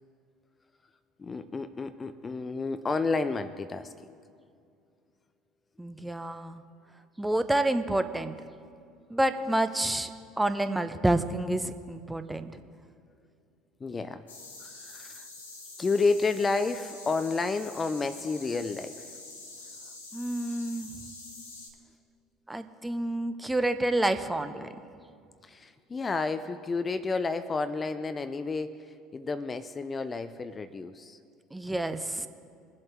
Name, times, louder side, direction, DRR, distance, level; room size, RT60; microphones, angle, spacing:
voice 1, 1.2-3.9 13.8-14.2 14.6-15.3 15.8-19.1 25.4-31.2, left 4 dB, 25° left, 11 dB, 0.5 m, -31 dB
voice 2, 5.8-6.6 7.2-8.3 9.1-10.1 10.4-12.5 20.1-20.9 22.5-24.7 31.5-32.3, right 1 dB, 10° right, 9 dB, 0.8 m, -28 dB
sound 1, 14.3-21.7, left 3 dB, 85° left, 1.8 m, -46 dB
22.0 x 7.7 x 4.5 m, 2.3 s
figure-of-eight pair, 65°, 0 cm